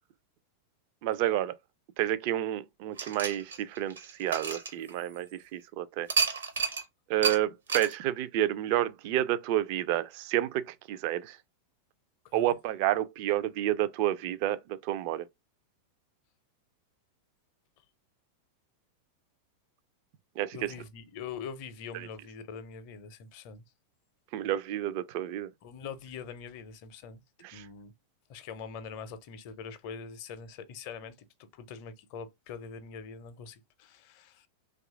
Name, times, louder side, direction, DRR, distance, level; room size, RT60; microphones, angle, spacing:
voice 1, 1.0-1.5 2.0-6.1 7.1-11.4 12.3-15.3 20.4-20.6 24.3-25.5 27.4-27.7, right 13 dB, 45° right, 0.3 m, -30 dB
sound 1, 3.0-5.4 6.1-6.9 7.2-7.4 7.7-7.9, right 5 dB, 70° right, 0.7 m, -31 dB
voice 2, 12.2-12.6 20.5-23.6 25.6-27.2 27.5-27.9 28.3-31.2 31.5-34.5, left 6 dB, 45° left, 0.6 m, -43 dB
2.9 x 2.3 x 3.5 m
figure-of-eight pair, 90°, 0 cm